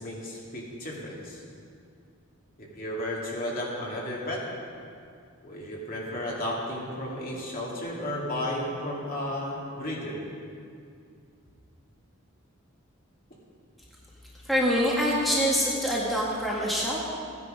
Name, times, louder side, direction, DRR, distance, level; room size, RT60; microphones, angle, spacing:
voice 1, 0.0-1.4 2.6-4.4 5.4-10.2, left 1 dB, 40° left, -4 dB, 2.5 m, -33 dB
voice 2, 14.4-17.0, equal, ahead, -6 dB, 1.7 m, -25 dB
15.5 x 9.8 x 5.2 m, 2.3 s
head